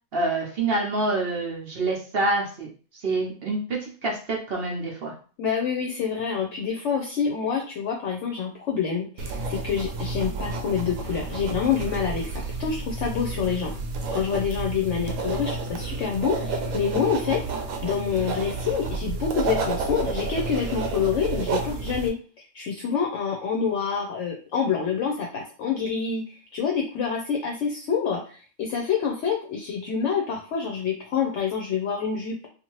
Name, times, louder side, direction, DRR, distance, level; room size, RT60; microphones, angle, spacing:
voice 1, 0.1-2.7 3.0-5.1, right 2 dB, 55° right, -1 dB, 0.8 m, -26 dB
voice 2, 5.4-13.7 14.1-17.4 17.8-22.1 22.5-32.4, left 6 dB, 70° left, 0 dB, 0.8 m, -27 dB
sound 1, 9.2-22.1, right 3 dB, 80° right, 1.0 m, -30 dB
2.7 x 2.5 x 3.0 m, 0.39 s
omnidirectional pair, 1.4 m